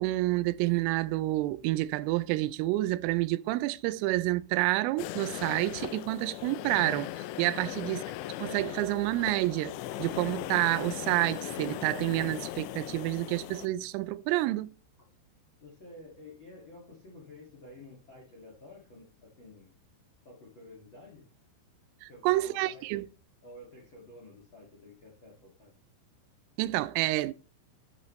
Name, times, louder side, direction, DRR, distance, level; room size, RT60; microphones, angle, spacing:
voice 1, 0.0-7.1 7.4-8.0 8.4-14.7 22.0-23.0 26.6-27.3, right 18 dB, 90° right, 3.2 m, -29 dB
sound 1, 5.0-13.7, left 14 dB, 85° left, 2.6 m, -38 dB
voice 2, 7.6-7.9 15.6-19.7 20.2-21.3 22.1-23.1 23.4-25.7, left 2 dB, 65° left, 1.2 m, -51 dB
11.0 x 8.0 x 3.1 m
omnidirectional pair, 5.8 m